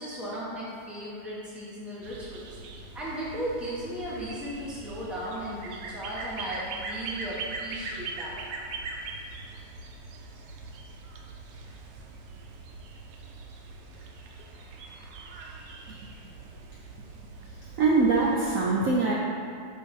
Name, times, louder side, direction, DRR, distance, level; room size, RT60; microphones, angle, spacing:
voice 1, 0.0-2.5 2.9-8.4, right 1 dB, ahead, -8 dB, 0.9 m, -36 dB
sound 1, 2.0-18.6, right 3 dB, 90° right, 1.3 m, -41 dB
voice 2, 17.4-19.1, right 3 dB, 65° right, -5 dB, 0.8 m, -24 dB
6.3 x 2.8 x 5.3 m, 2.3 s
omnidirectional pair, 1.9 m